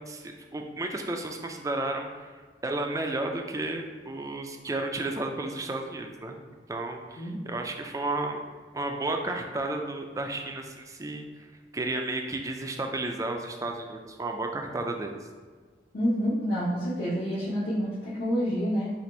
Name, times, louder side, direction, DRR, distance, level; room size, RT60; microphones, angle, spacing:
voice 1, 0.1-2.3 2.6-6.4 6.7-8.4 8.7-11.5 11.7-15.1, right 2 dB, 20° right, 4 dB, 0.4 m, -32 dB
voice 2, 15.9-18.9, equal, 70° left, -11 dB, 1.0 m, -28 dB
4.1 x 2.5 x 4.4 m, 1.5 s
head